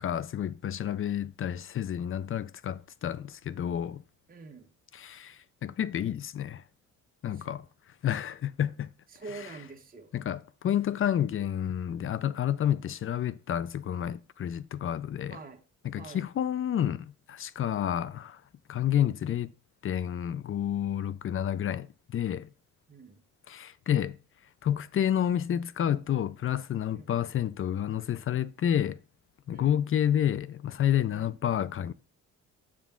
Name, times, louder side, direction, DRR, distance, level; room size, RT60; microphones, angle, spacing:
voice 1, 0.0-4.0 4.9-6.6 7.2-7.6 8.0-8.9 9.3-9.6 10.1-15.4 15.8-18.4 18.7-19.5 19.8-22.5 23.5-24.2 24.6-29.0 29.5-31.9, left 10 dB, 45° left, 0.5 m, -30 dB
voice 2, 4.3-4.7 7.4-7.6 9.1-10.1 15.3-15.6 16.0-16.2 22.9-23.2 26.9-27.1 29.5-29.8 31.1-31.3, right 4 dB, 30° right, 1.4 m, -45 dB
7.4 x 6.9 x 3.7 m
cardioid pair, 90°, 30 cm